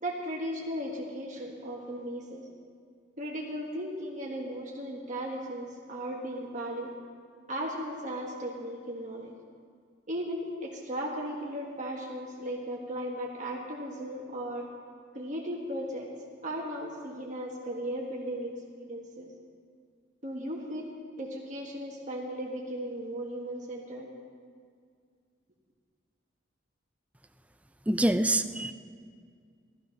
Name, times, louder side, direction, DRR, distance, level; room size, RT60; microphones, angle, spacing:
voice 1, 0.0-2.4 3.2-6.9 7.5-9.3 10.1-14.7 15.1-16.1 16.4-19.3 20.2-20.9 21.2-24.1, equal, 40° right, -2 dB, 1.6 m, -36 dB
voice 2, 27.9-28.7, right 1 dB, 5° right, 10 dB, 0.5 m, -25 dB
16.5 x 13.5 x 5.9 m, 2.2 s
head